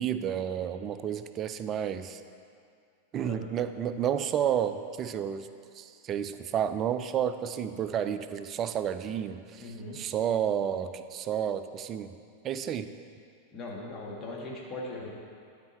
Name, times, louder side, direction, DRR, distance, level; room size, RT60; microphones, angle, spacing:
voice 1, 0.0-2.2 3.1-5.5 5.7-12.2 12.4-12.9, right 9 dB, 30° right, 11 dB, 0.3 m, -31 dB
voice 2, 3.2-3.6 9.6-10.0 13.5-15.1, left 2 dB, 20° left, -4 dB, 1.6 m, -39 dB
12.0 x 4.4 x 4.3 m, 2.3 s
figure-of-eight pair, 90°, 0 cm